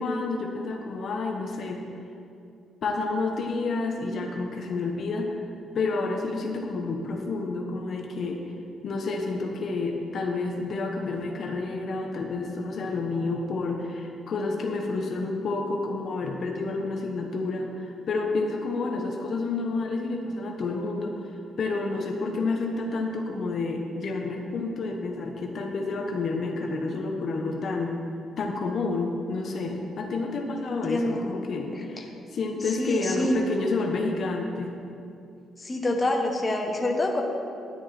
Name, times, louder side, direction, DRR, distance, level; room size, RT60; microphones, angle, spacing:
voice 1, 0.0-1.8 2.8-5.4 5.7-8.4 8.8-28.0 28.4-34.7, left 3 dB, 55° left, 1 dB, 1.1 m, -29 dB
voice 2, 30.6-31.2 31.7-31.9 32.7-33.4 35.6-37.2, left 1 dB, 25° left, 1 dB, 1.3 m, -27 dB
10.5 x 9.9 x 4.3 m, 2.5 s
cardioid pair, 90°, 0 cm